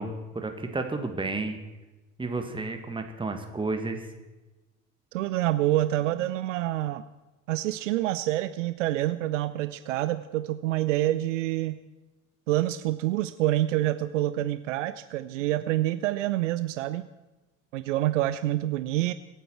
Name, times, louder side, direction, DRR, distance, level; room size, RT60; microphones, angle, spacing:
voice 1, 0.0-1.6 2.2-4.1, right 3 dB, 10° right, 6 dB, 1.9 m, -32 dB
voice 2, 5.1-7.1 7.5-11.8 12.5-17.1 17.7-19.1, right 15 dB, 65° right, 13 dB, 0.6 m, -27 dB
25.0 x 9.1 x 4.5 m, 1.1 s
figure-of-eight pair, 65°, 41 cm